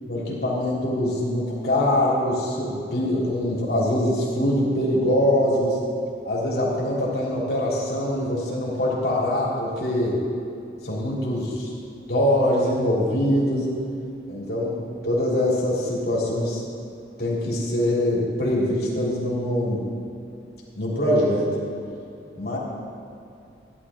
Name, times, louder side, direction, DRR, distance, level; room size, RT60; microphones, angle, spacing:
voice 1, 0.1-5.8 6.2-10.2 10.8-11.7 12.1-13.8 14.3-16.6 17.2-19.8 20.7-21.5 22.4-22.6, left 1 dB, 55° left, -5 dB, 3.0 m, -23 dB
15.0 x 11.0 x 3.7 m, 2.6 s
head